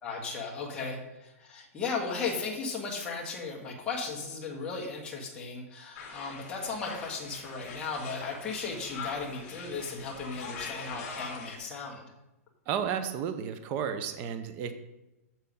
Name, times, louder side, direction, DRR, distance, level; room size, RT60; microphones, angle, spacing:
voice 1, 0.0-12.0, left 4 dB, 10° left, -3 dB, 1.4 m, -36 dB
sound 1, 5.9-11.6, left 5 dB, 30° left, 2.0 m, -43 dB
voice 2, 12.7-14.7, right 8 dB, 20° right, 9 dB, 0.5 m, -32 dB
7.4 x 6.8 x 5.3 m, 0.97 s
hypercardioid pair, 170°, 8 cm